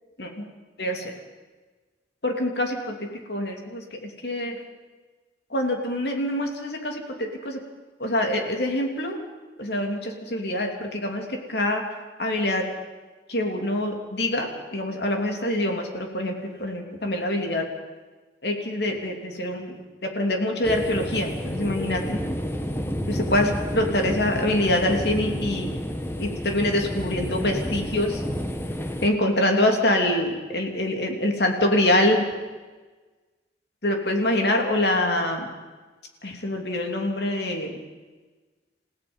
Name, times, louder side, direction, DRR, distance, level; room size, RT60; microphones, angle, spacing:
voice 1, 0.8-1.1 2.2-3.0 3.3-4.6 5.5-7.6 8.0-9.2 9.6-11.8 12.2-12.7 13.3-17.7 18.4-19.8 20.0-22.2 23.1-25.7 26.2-28.2 29.0-32.2 33.8-35.5 36.2-37.7, left 1 dB, 65° left, 3 dB, 3.0 m, -25 dB
sound 1, 20.6-29.1, equal, 15° left, 1.3 m, -30 dB
28.5 x 16.5 x 5.5 m, 1.3 s
head